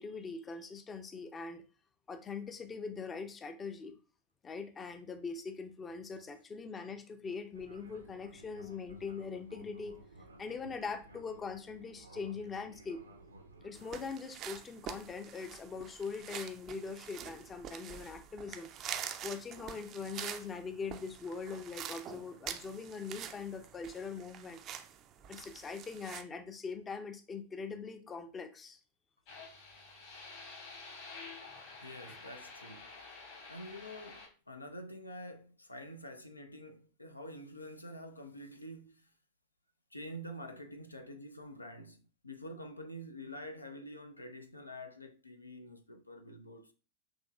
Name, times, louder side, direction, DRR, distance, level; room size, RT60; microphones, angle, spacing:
voice 1, 0.0-1.6 2.1-3.9 4.4-10.0 10.4-13.0 13.6-18.7 19.0-24.6 25.3-28.8 32.1-32.2, left 5 dB, 20° left, 0.5 m, -42 dB
Fixed-wing aircraft airplane, 7.5-14.1, right 2 dB, 80° right, 0.7 m, -56 dB
sound 1, 13.7-26.2, right 9 dB, 35° right, 0.4 m, -46 dB
sound 2, 29.3-34.3, left 3 dB, 50° left, 1.7 m, -49 dB
voice 2, 31.8-33.0 33.5-39.1 39.9-46.7, equal, 85° left, 0.5 m, -47 dB
6.2 x 2.9 x 2.3 m
figure-of-eight pair, 90°, 0 cm